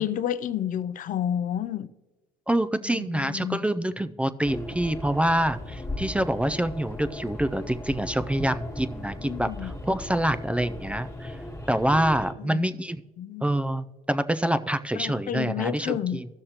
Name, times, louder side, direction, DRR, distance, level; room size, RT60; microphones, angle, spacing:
voice 1, 0.0-1.9 2.8-3.6 9.2-9.7 12.4-12.8 13.2-13.4 14.9-16.2, left 10 dB, 50° left, 0.5 m, -30 dB
voice 2, 2.5-11.4 11.7-13.0 13.4-16.3, right 1 dB, 5° right, 0.3 m, -26 dB
sound 1, 4.4-12.3, left 1 dB, 15° left, 1.4 m, -37 dB
16.0 x 6.5 x 2.9 m
cardioid pair, 110°, 17 cm